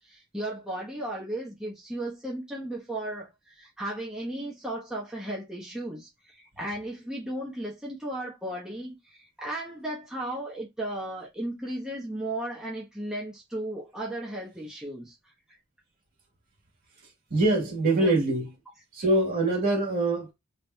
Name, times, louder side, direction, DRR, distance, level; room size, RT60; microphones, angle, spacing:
voice 1, 0.0-15.2 18.0-18.1, right 1 dB, 5° right, 1.1 m, -35 dB
voice 2, 17.3-18.5 18.9-20.3, right 2 dB, 45° right, 2.2 m, -24 dB
3.4 x 3.3 x 2.8 m
head